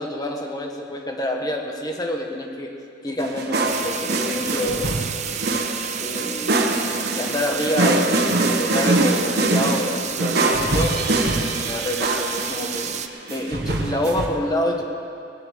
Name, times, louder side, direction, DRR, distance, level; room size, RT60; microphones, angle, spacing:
voice 1, 0.0-2.7 3.0-5.0 6.0-6.6 7.2-11.0 11.4-13.0 13.3-14.8, left 1 dB, 20° left, 2 dB, 1.4 m, -27 dB
sound 1, 3.2-14.3, right 2 dB, 55° right, 1.3 m, -23 dB
sound 2, 3.6-13.1, right 9 dB, 40° right, 0.6 m, -31 dB
18.5 x 7.7 x 7.6 m, 2.6 s
head